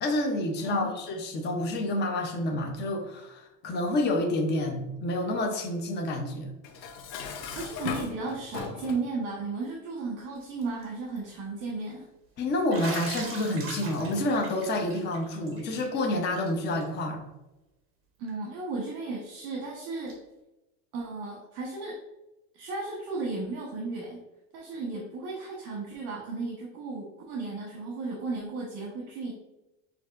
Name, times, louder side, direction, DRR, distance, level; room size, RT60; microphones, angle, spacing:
voice 1, 0.0-6.5 12.4-17.2, left 1 dB, 20° left, 2 dB, 0.6 m, -29 dB
Dishes pots and pans, 6.6-9.1, left 6 dB, 90° left, 0.8 m, -37 dB
voice 2, 7.5-12.1 18.2-20.1 20.9-22.0 22.5-24.2 24.5-29.3, right 3 dB, 55° right, -3 dB, 1.1 m, -34 dB
Bathtub (filling or washing), 10.4-10.8 11.2-11.3 12.7-16.0 16.4-16.5 16.8-16.9 18.3-18.4 20.1-20.2, right 3 dB, 25° right, 1.0 m, -40 dB
6.4 x 2.7 x 2.4 m, 0.95 s
supercardioid pair, 135°, 48 cm